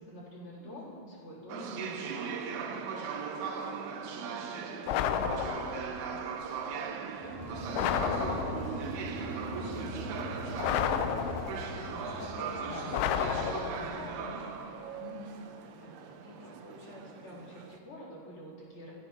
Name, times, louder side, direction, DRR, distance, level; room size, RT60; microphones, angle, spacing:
voice 1, 0.1-2.0 2.2-3.7 4.2-8.9 9.3-9.8 10.1-12.1 13.9-14.6 14.8-15.0 15.8-18.9, equal, 35° left, -8 dB, 3.1 m, -49 dB
sound 1, 1.5-17.8, right 6 dB, 80° right, 2.5 m, -39 dB
voice 2, 1.7-2.1 9.6-10.0 11.9-14.4 15.0-15.3, left 4 dB, 65° left, -5 dB, 2.1 m, -45 dB
sound 2, 4.9-5.9 7.7-8.8 10.6-11.8 12.9-14.0, left 8 dB, 85° left, 2.9 m, -31 dB
Crowd, 7.2-13.5, equal, 15° right, 0.8 m, -40 dB
17.5 x 12.0 x 2.7 m, 2.3 s
omnidirectional pair, 5.1 m